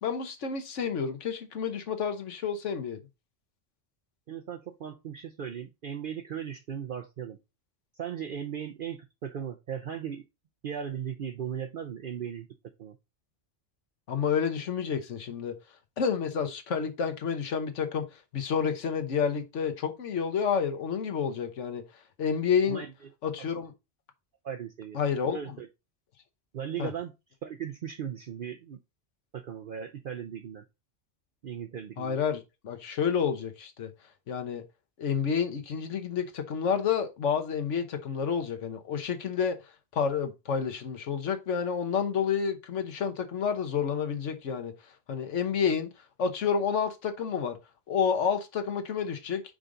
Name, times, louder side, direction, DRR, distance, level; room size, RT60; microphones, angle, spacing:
voice 1, 0.0-3.0 14.1-15.5 16.0-21.8 22.2-22.8 23.2-23.7 24.9-25.5 26.8-26.9 32.0-33.9 34.3-34.6 35.0-39.6 39.9-44.7 45.1-45.9 46.2-47.6 47.9-49.4, left 7 dB, 80° left, 1.3 m, -29 dB
voice 2, 4.3-7.4 8.0-10.3 10.6-12.5 12.8-13.0 22.7-22.9 24.4-25.0 25.3-25.7 26.5-27.1 27.4-28.8 29.3-30.6 31.4-32.2, right 8 dB, 55° right, 0.7 m, -37 dB
5.0 x 5.0 x 3.8 m
omnidirectional pair, 1.2 m